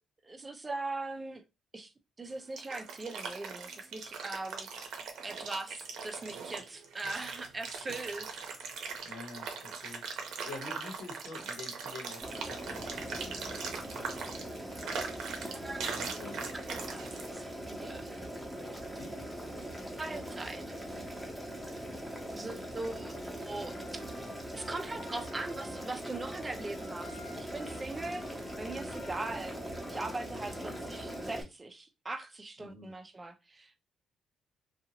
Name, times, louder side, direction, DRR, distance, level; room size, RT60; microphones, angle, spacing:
voice 1, 0.2-1.4 1.7-1.9 2.2-4.7 5.2-8.4 15.4-15.9 16.5-18.2 20.0-20.6 22.3-24.1 24.5-28.3 28.6-29.6 29.9-33.7, right 2 dB, 25° right, 0.5 m, -40 dB
sound 1, 2.3-17.3, right 5 dB, 75° right, 0.7 m, -41 dB
voice 2, 9.0-13.4 15.8-16.5 19.0-19.3 32.6-32.9, left 3 dB, 85° left, 1.0 m, -47 dB
Boiling, 12.2-31.4, right 1 dB, ahead, 0.9 m, -41 dB
Trumpet, 23.5-31.3, left 3 dB, 40° left, 0.6 m, -54 dB
2.7 x 2.4 x 2.8 m
cardioid pair, 90°, 0 cm